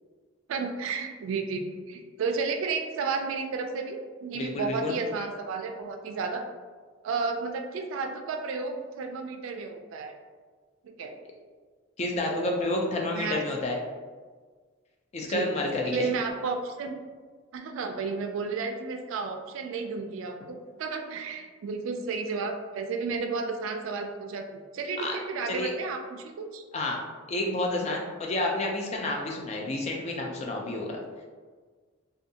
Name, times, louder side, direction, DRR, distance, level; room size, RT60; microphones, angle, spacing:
voice 1, 0.5-6.4 7.0-10.1 10.8-11.2 12.3-12.7 13.1-13.4 15.3-16.9 17.5-26.6, right 4 dB, 75° right, 4 dB, 0.3 m, -32 dB
voice 2, 4.3-4.9 12.0-13.8 15.1-16.1 25.0-25.2 25.5-25.7 26.7-27.0 27.3-31.0, left 2 dB, 30° left, 0 dB, 0.3 m, -30 dB
2.5 x 2.3 x 2.7 m, 1.5 s
head